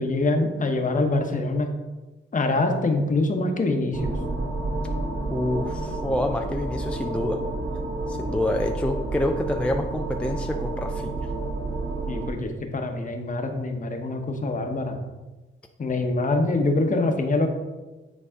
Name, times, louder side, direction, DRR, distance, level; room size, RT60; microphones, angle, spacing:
voice 1, 0.0-1.7 2.3-4.1 12.1-15.0 15.8-17.5, left 2 dB, 40° left, 4 dB, 1.1 m, -24 dB
sound 1, 3.9-12.3, right 2 dB, 75° right, 1.2 m, -30 dB
voice 2, 5.3-7.4 8.1-11.2, left 1 dB, 5° left, 3 dB, 0.4 m, -27 dB
9.7 x 4.0 x 3.7 m, 1.1 s
cardioid pair, 85°, 21 cm